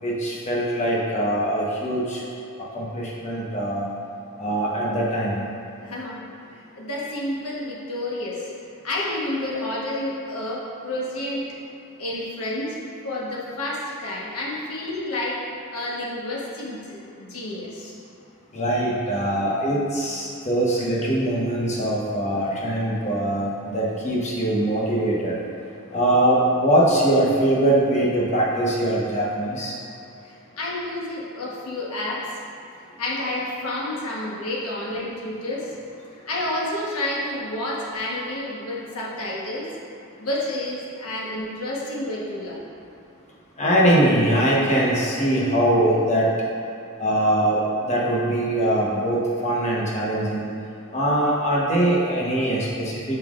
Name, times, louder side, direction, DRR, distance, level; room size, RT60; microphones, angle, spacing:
voice 1, 0.0-2.2 2.7-3.9 4.4-5.4 18.5-25.4 25.9-29.7 43.6-46.3 47.0-50.5 50.9-53.2, right 1 dB, 30° left, -5 dB, 1.0 m, -22 dB
voice 2, 5.8-6.2 6.5-8.5 8.8-11.5 12.0-12.8 13.0-15.4 15.7-17.9 30.2-32.3 33.0-35.7 36.3-39.7 40.2-42.6, left 1 dB, 85° left, -5 dB, 1.2 m, -30 dB
7.4 x 5.6 x 2.5 m, 2.7 s
head